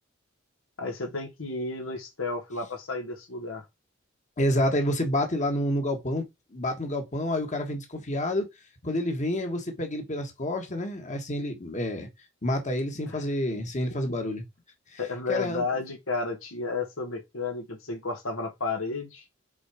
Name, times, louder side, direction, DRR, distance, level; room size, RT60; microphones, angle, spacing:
voice 1, 0.8-3.6 13.1-13.2 15.0-19.2, left 3 dB, 80° left, 1.6 m, -32 dB
voice 2, 4.4-6.2 6.5-8.5 8.8-12.1 12.4-14.4 14.9-15.0 15.3-15.6, left 1 dB, 35° left, 1.5 m, -28 dB
6.2 x 3.9 x 4.9 m
head